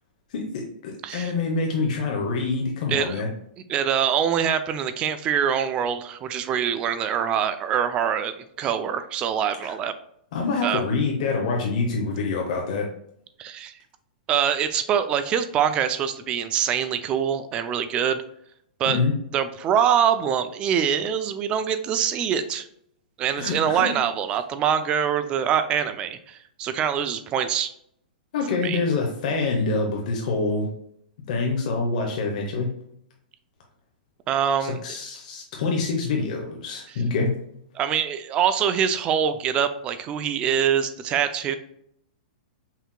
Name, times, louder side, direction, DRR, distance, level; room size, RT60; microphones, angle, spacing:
voice 1, 0.3-3.3 9.6-9.7 10.3-12.9 18.9-19.1 23.4-23.9 28.3-30.7 31.3-32.7 34.8-37.3, left 4 dB, 55° left, 1 dB, 0.8 m, -26 dB
voice 2, 3.7-9.9 10.6-10.8 13.4-13.7 14.3-18.2 18.8-19.0 19.3-22.7 23.2-27.7 28.6-28.8 34.3-34.8 36.9-37.0 37.8-41.6, right 8 dB, 20° right, 10 dB, 0.3 m, -24 dB
5.6 x 2.9 x 2.2 m, 0.70 s
hypercardioid pair, 160°, 5 cm